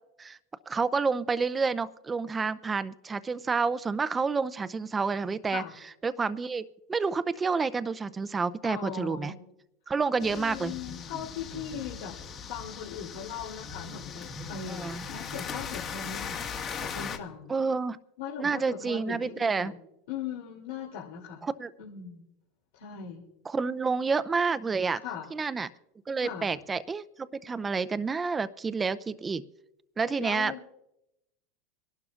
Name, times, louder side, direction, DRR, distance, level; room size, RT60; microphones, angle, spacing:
voice 1, 0.7-5.6 6.0-9.3 9.9-10.7 14.7-15.0 17.5-18.0 18.4-19.7 21.4-21.7 23.5-25.0 25.3-25.7 26.1-29.4 30.0-30.5, right 4 dB, 20° right, 14 dB, 0.5 m, -29 dB
voice 2, 8.6-9.4 10.1-12.2 12.5-16.4 16.7-17.5 18.2-19.8 20.1-21.5 21.8-22.2 22.7-23.2 25.0-25.3 26.2-26.5 30.2-30.6, left 7 dB, 75° left, -2 dB, 2.8 m, -39 dB
sound 1, 10.2-17.2, left 6 dB, 35° left, 1.7 m, -39 dB
25.5 x 12.0 x 2.5 m, 0.86 s
supercardioid pair, 115°, 0 cm